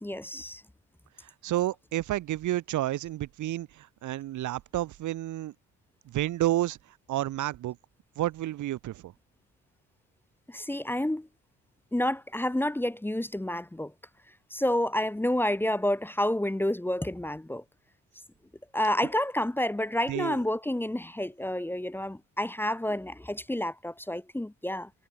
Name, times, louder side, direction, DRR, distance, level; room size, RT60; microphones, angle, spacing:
voice 1, 0.0-0.6 10.5-11.3 11.9-13.9 14.5-17.6 18.7-24.9, left 1 dB, 5° left, 1.0 m, -29 dB
voice 2, 1.2-5.5 6.0-6.8 7.1-7.8 8.2-9.1 20.1-20.4, right 14 dB, 75° right, 1.2 m, -30 dB
cardioid pair, 90°, 30 cm